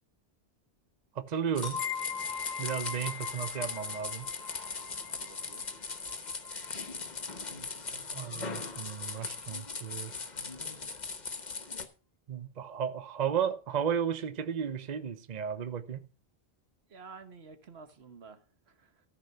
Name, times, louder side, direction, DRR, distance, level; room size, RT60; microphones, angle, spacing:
voice 1, 1.2-1.8 2.6-4.3 8.1-10.1 12.3-16.1, right 8 dB, 45° right, 0.9 m, -34 dB
sound 1, 1.5-11.9, left 4 dB, 45° left, 1.3 m, -39 dB
sound 2, 1.6-7.1, left 6 dB, 20° left, 2.5 m, -41 dB
voice 2, 5.1-5.7 16.9-19.0, right 5 dB, 80° right, 1.5 m, -51 dB
13.5 x 5.1 x 6.7 m
omnidirectional pair, 1.0 m